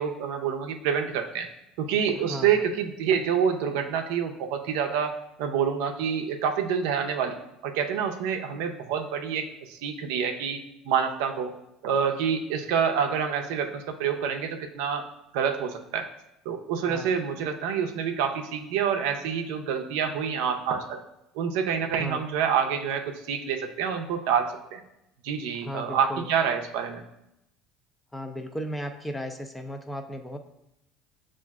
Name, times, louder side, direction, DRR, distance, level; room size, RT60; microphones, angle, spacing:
voice 1, 0.0-1.5 1.8-5.1 5.4-7.4 7.6-10.6 10.9-11.5 11.8-15.0 15.3-16.0 16.5-21.0 21.4-23.0 23.3-24.8 25.2-27.0, right 7 dB, 80° right, 5 dB, 0.5 m, -27 dB
voice 2, 2.3-2.7 16.9-17.1 22.0-22.2 25.6-26.3 28.1-30.4, equal, 10° left, 5 dB, 0.4 m, -35 dB
7.1 x 2.4 x 2.3 m, 0.84 s
cardioid pair, 125°, 0 cm